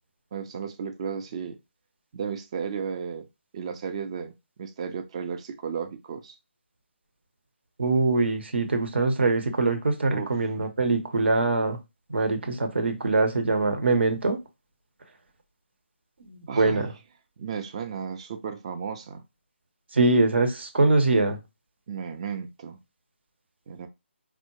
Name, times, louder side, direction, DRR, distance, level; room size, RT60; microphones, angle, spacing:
voice 1, 0.3-1.6 2.1-3.3 3.5-4.3 4.6-6.4 10.1-10.3 16.5-16.9 17.4-19.2 21.9-22.8 23.7-23.9, right 6 dB, 30° right, 0.5 m, -34 dB
voice 2, 7.8-11.8 12.1-14.4 16.2-16.9 19.9-21.4, right 3 dB, 60° right, 0.8 m, -23 dB
4.6 x 2.0 x 2.9 m
figure-of-eight pair, 150°, 7 cm